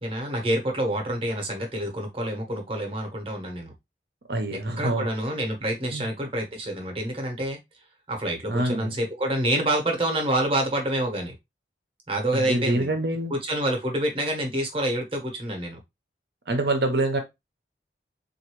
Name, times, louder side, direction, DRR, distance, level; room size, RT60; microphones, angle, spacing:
voice 1, 0.0-3.7 4.5-7.6 8.1-11.3 12.1-12.9 13.3-15.8, right 1 dB, 30° right, 1.0 m, -27 dB
voice 2, 4.3-5.1 5.9-6.0 8.5-8.9 12.3-13.3 16.5-17.2, right 1 dB, 60° right, 0.8 m, -25 dB
3.9 x 2.6 x 3.0 m
head